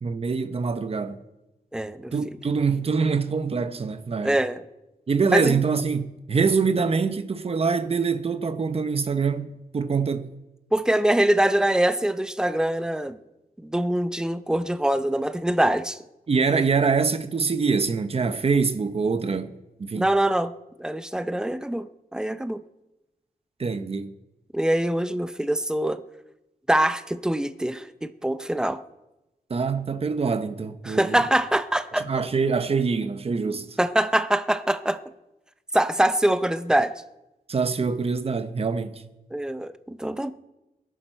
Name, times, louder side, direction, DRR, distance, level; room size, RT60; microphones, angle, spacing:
voice 1, 0.0-1.2 2.1-4.4 5.1-10.3 16.3-19.5 19.8-20.1 23.6-24.1 29.5-31.2 31.9-33.8 37.5-39.0, right 5 dB, 40° right, 0.9 m, -24 dB
voice 2, 1.7-2.1 4.2-4.6 5.3-5.6 10.7-13.2 13.6-16.0 19.9-20.5 20.8-21.9 22.1-22.6 24.5-26.0 26.7-28.8 30.8-32.1 33.8-35.0 35.7-36.9 39.3-40.3, right 1 dB, 5° right, 0.5 m, -23 dB
20.5 x 11.5 x 4.5 m
wide cardioid pair, 175°, 16 cm